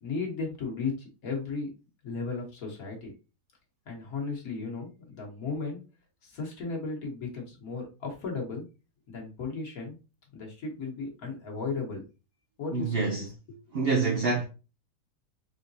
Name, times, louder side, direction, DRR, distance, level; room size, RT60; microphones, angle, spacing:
voice 1, 0.0-1.7 2.0-3.1 3.9-5.8 6.2-8.7 9.1-10.0 10.3-12.0 12.6-13.6, left 4 dB, 65° left, 1.6 m, -35 dB
voice 2, 12.7-13.3 13.7-14.4, right 4 dB, 70° right, 0.5 m, -26 dB
3.8 x 3.5 x 2.7 m
omnidirectional pair, 1.7 m